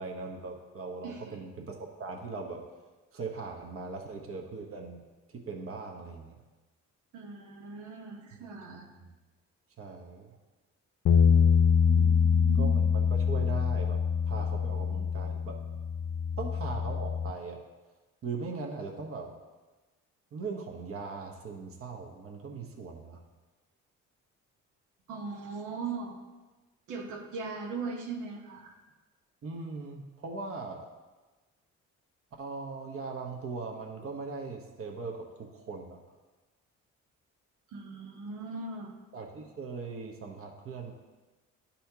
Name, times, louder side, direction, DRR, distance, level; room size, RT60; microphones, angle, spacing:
voice 1, 0.0-2.6 3.1-5.0 5.3-6.4 8.3-8.4 9.0-9.1 9.8-10.4 12.5-14.0 14.3-15.6 16.4-17.6 18.2-19.3 20.3-23.2 29.4-30.9 32.4-36.0 39.1-40.9, right 4 dB, 45° right, 1 dB, 1.0 m, -40 dB
voice 2, 1.0-1.4 7.1-8.9 11.9-12.9 25.1-26.2 26.9-28.7 37.7-38.9, right 4 dB, 80° right, 1 dB, 1.1 m, -39 dB
sound 1, 11.1-17.3, left 6 dB, 50° left, 0.4 m, -25 dB
11.5 x 4.2 x 2.8 m, 1.2 s
cardioid pair, 90°, 30 cm